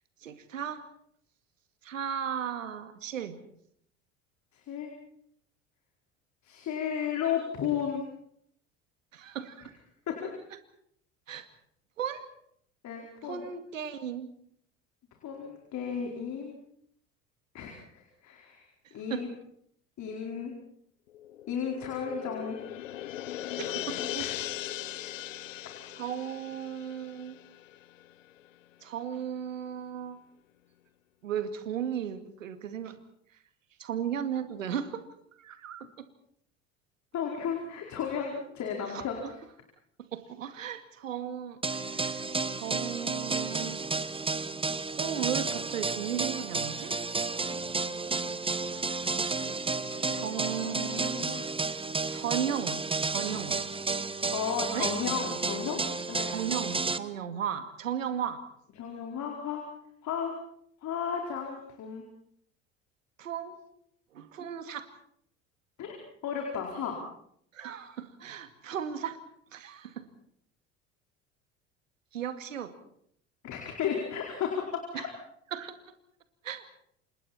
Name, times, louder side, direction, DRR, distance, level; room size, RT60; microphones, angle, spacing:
voice 1, 0.2-0.8 1.8-3.4 9.1-9.7 11.3-11.5 12.0-12.2 13.2-14.3 18.8-19.3 23.6-24.3 25.9-27.4 28.8-30.2 31.2-33.0 33.8-35.1 35.4-36.1 38.9-39.0 40.0-43.8 45.0-47.0 50.1-51.2 52.1-53.6 54.7-54.9 56.3-58.4 63.2-63.6 64.1-64.9 67.5-69.2 69.5-70.1 72.1-72.7 74.9-75.1 75.5-75.9 76.4-76.7, right 9 dB, 80° right, 10 dB, 2.3 m, -36 dB
voice 2, 4.5-4.9 6.4-8.0 10.1-10.2 12.8-13.4 15.2-16.6 17.5-18.6 18.9-19.3 20.0-20.5 21.5-22.6 24.1-24.4 37.1-39.2 49.9-51.4 54.3-55.8 56.1-56.3 58.8-59.6 60.0-60.3 60.8-62.0 65.8-66.0 66.2-66.9 73.4-74.6 74.9-75.1, left 7 dB, 45° left, 1 dB, 4.8 m, -34 dB
sound 1, 21.1-28.1 28.5-28.6, left 13 dB, 80° left, 0.9 m, -39 dB
sound 2, 41.6-57.0, right 4 dB, 15° right, 1.3 m, -32 dB
28.5 x 26.0 x 4.4 m, 0.68 s
figure-of-eight pair, 70°, 39 cm